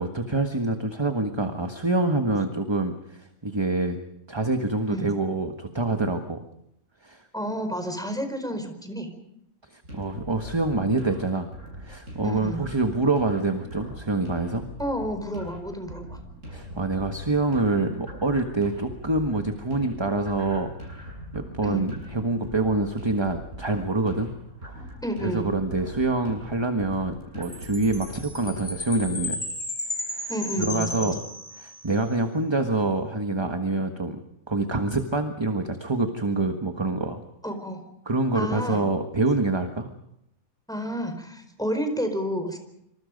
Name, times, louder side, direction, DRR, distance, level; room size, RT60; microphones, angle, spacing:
voice 1, 0.0-4.0 4.3-6.4 7.0-7.3 9.6-11.5 11.7-14.7 16.5-24.3 24.7-24.9 25.2-29.4 29.9-30.3 30.6-31.2 31.5-34.2 34.5-37.2 38.0-39.9, right 2 dB, 20° right, 6 dB, 1.4 m, -26 dB
voice 2, 7.3-9.1 12.2-12.6 14.8-16.2 21.6-21.8 25.0-25.5 30.3-31.1 37.4-37.8 38.3-38.8 40.7-42.6, equal, 5° left, 6 dB, 4.7 m, -30 dB
sound 1, 9.8-29.2, equal, 60° right, 8.6 m, -42 dB
Chime, 27.4-31.9, left 2 dB, 40° left, 7.1 m, -34 dB
27.0 x 26.5 x 5.3 m, 0.78 s
omnidirectional pair, 1.5 m